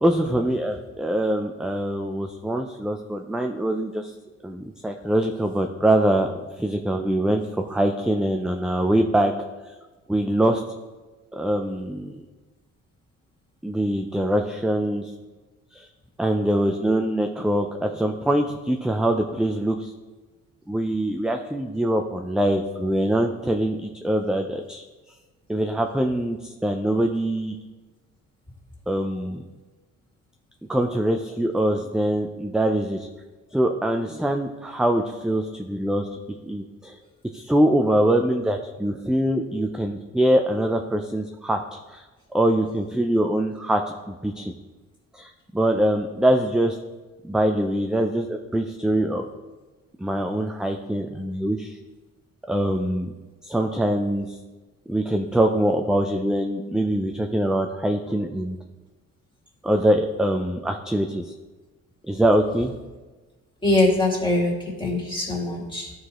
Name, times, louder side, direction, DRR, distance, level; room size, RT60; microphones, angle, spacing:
voice 1, 0.0-4.1 4.4-6.3 6.6-9.3 9.7-9.8 10.1-10.6 11.3-12.2 13.6-15.1 15.7-15.9 16.2-19.9 20.7-24.8 25.5-27.6 28.9-29.4 30.7-33.1 33.5-37.0 37.3-42.0 42.3-44.5 45.1-46.8 47.2-49.3 50.0-51.8 52.5-53.1 53.4-54.4 54.9-58.6 59.6-61.2 62.1-62.7, right 1 dB, ahead, 4 dB, 0.3 m, -23 dB
voice 2, 63.6-65.9, left 2 dB, 15° left, -2 dB, 2.2 m, -22 dB
13.5 x 4.8 x 3.0 m, 1.2 s
cardioid pair, 125°, 30 cm